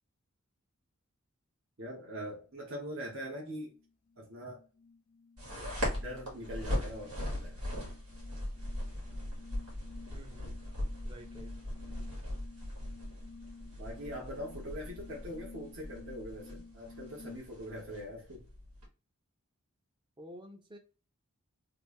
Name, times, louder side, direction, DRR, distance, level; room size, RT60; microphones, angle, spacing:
sound 1, 1.8-2.1 2.6-17.4, left 4 dB, 35° left, 0.4 m, -54 dB
voice 1, 1.8-3.7 4.2-4.6 5.6-7.6 13.8-18.5, equal, 60° right, 1.3 m, -43 dB
sound 2, 5.4-18.9, left 1 dB, 85° right, 2.0 m, -40 dB
voice 2, 10.1-10.6 11.0-11.5 20.2-20.8, equal, 20° right, 0.7 m, -50 dB
3.3 x 2.6 x 3.2 m
head